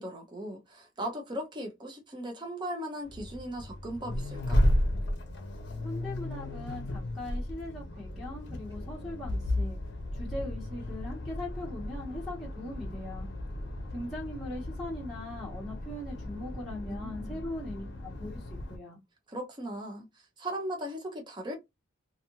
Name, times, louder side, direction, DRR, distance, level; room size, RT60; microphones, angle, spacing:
voice 1, 0.0-4.6 8.1-8.2 16.9-17.4 17.8-17.9 18.8-18.9 19.3-21.6, equal, 20° right, 0.6 m, -38 dB
Accelerating revving vroom, 3.1-18.8, left 1 dB, 55° left, 0.6 m, -34 dB
voice 2, 5.8-9.8 10.1-13.3 13.9-18.4 18.7-19.0, left 1 dB, ahead, 0.9 m, -40 dB
2.6 x 2.4 x 2.8 m
head